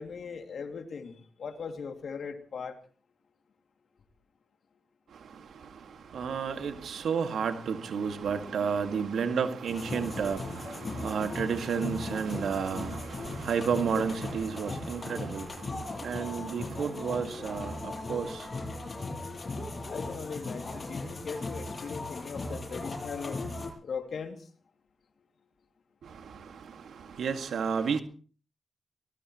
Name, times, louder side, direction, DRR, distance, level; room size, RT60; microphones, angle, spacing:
voice 1, 0.0-2.8 19.9-23.4 23.8-24.5, left 5 dB, 70° left, 2.4 m, -39 dB
voice 2, 5.1-18.6 26.0-28.0, right 6 dB, 80° right, 1.9 m, -32 dB
sound 1, 9.7-23.7, left 2 dB, 45° left, 7.8 m, -38 dB
23.0 x 20.5 x 3.1 m
cardioid pair, 50°, 0 cm